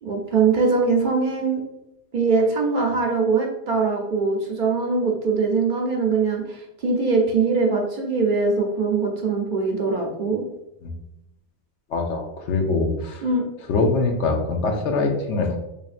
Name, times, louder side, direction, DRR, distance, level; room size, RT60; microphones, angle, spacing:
voice 1, 0.0-1.6 2.1-10.4 13.2-13.4, right 4 dB, 55° right, 1 dB, 0.7 m, -22 dB
voice 2, 11.9-13.2 13.7-15.6, left 3 dB, 85° left, 3 dB, 1.0 m, -23 dB
4.9 x 2.7 x 2.4 m, 0.87 s
omnidirectional pair, 1.2 m